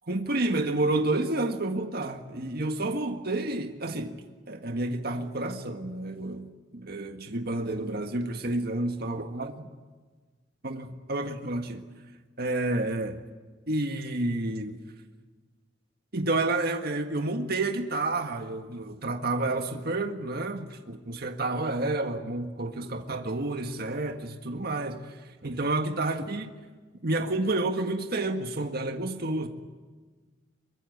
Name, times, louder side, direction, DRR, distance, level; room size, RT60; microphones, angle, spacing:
voice 1, 0.1-4.2 4.5-9.6 10.6-11.8 12.4-13.2 13.7-14.8 16.1-25.2 25.4-26.5 27.0-29.5, right 2 dB, 60° right, 1.7 m, -30 dB
23.5 x 23.0 x 9.5 m
head